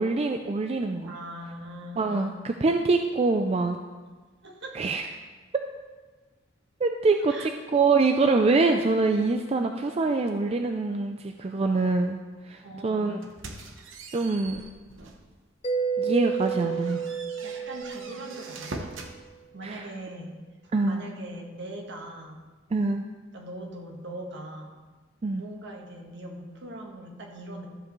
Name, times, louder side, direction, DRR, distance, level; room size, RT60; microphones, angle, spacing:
voice 1, 0.0-1.1 2.0-3.8 4.7-5.0 6.8-12.2 12.4-13.2 14.1-14.6 16.0-17.1 19.6-19.9 20.7-21.0 22.7-23.0 25.2-25.4, right 3 dB, 30° right, 5 dB, 0.4 m, -25 dB
voice 2, 1.0-2.3 4.4-4.8 7.3-7.5 12.6-13.1 17.4-18.9 19.5-20.4 20.8-22.4 23.3-24.7 25.3-27.7, right 1 dB, 65° right, 1 dB, 1.4 m, -41 dB
sound 1, 13.2-15.3 15.8-15.9 16.3-19.2, right 2 dB, 80° right, 1.0 m, -42 dB
Mallet percussion, 15.6-19.1, right 6 dB, 30° left, 0.6 m, -31 dB
13.5 x 7.4 x 3.1 m, 1.3 s
head